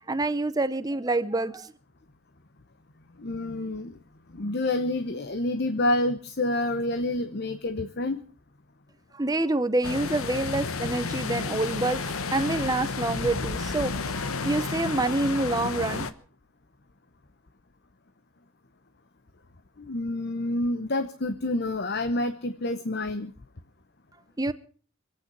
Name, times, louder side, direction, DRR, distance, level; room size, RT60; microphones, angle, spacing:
voice 1, 0.1-1.7 9.2-16.1 24.4-24.5, right 2 dB, 15° right, 0.8 m, -27 dB
voice 2, 3.2-4.0 4.3-8.2 19.8-23.3, left 1 dB, 50° left, 0.9 m, -28 dB
sound 1, 9.8-16.1, left 4 dB, 80° left, 1.1 m, -31 dB
26.0 x 8.8 x 6.1 m
head